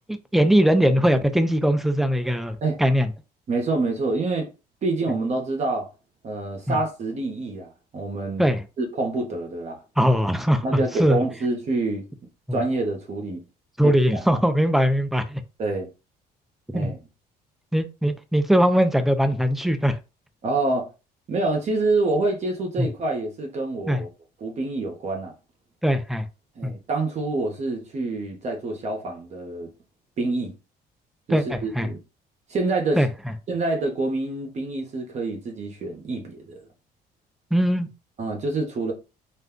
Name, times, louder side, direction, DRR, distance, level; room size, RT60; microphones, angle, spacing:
voice 1, 0.1-3.1 6.7-6.8 8.4-8.6 10.0-11.2 12.5-12.6 13.8-15.4 16.7-16.9 17.7-20.0 22.8-22.9 23.9-24.0 25.8-26.2 26.6-26.7 31.3-31.9 33.0-33.3 37.5-37.9, equal, ahead, 0.4 m, -21 dB
voice 2, 3.5-4.5 4.8-5.9 6.2-8.5 8.8-9.8 10.6-12.1 12.5-13.4 13.8-14.0 15.6-15.9 16.7-17.0 20.4-20.9 21.3-24.1 24.4-25.3 26.6-29.7 30.2-30.5 31.3-32.0 32.5-33.0 33.5-36.6 38.2-38.9, right 2 dB, 40° right, 0.8 m, -26 dB
2.5 x 2.2 x 3.6 m
cardioid pair, 110°, 17 cm